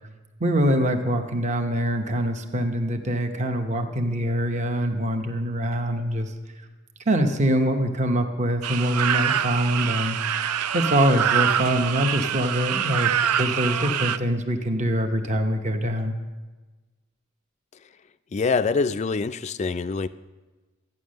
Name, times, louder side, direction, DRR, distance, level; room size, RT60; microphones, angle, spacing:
voice 1, 0.4-6.3 7.1-10.2 10.7-16.2, equal, 30° right, 5 dB, 0.8 m, -24 dB
sound 1, 8.6-14.2, right 9 dB, 90° right, 0.5 m, -25 dB
voice 2, 18.3-20.1, left 4 dB, 30° left, 12 dB, 0.3 m, -24 dB
13.5 x 9.6 x 6.4 m, 1.3 s
head